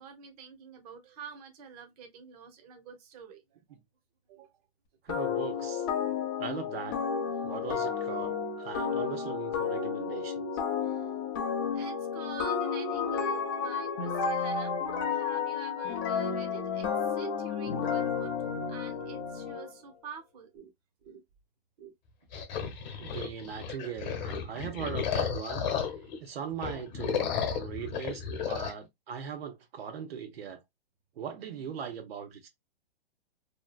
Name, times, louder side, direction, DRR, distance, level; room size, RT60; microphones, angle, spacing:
voice 1, 0.0-3.6 4.3-4.6 10.8-11.1 11.7-14.8 15.1-20.7 21.0-21.2 21.8-21.9, right 6 dB, 40° right, 0.8 m, -47 dB
voice 2, 5.0-5.9 6.4-7.0 7.4-10.5 23.0-25.9 26.2-30.6 31.2-32.5, right 7 dB, 75° right, 0.7 m, -40 dB
sound 1, 5.1-19.7, left 6 dB, 25° left, 0.3 m, -32 dB
sound 2, 22.3-26.2 26.5-28.7, left 7 dB, 45° left, 0.9 m, -33 dB
2.7 x 2.3 x 2.4 m
hypercardioid pair, 150°, 31 cm